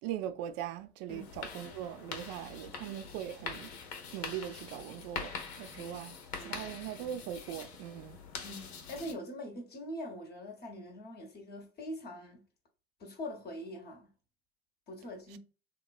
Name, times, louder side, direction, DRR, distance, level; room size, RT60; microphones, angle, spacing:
voice 1, 0.0-3.7 4.1-5.3 5.6-8.2 15.3-15.4, right 11 dB, 50° right, 0.5 m, -40 dB
sound 1, 1.1-9.1, left 5 dB, 80° left, 0.7 m, -44 dB
voice 2, 6.4-6.8 8.4-12.4 13.0-14.1 14.9-15.4, left 1 dB, 30° left, 0.8 m, -43 dB
3.0 x 2.1 x 2.3 m
hypercardioid pair, 85°, 32 cm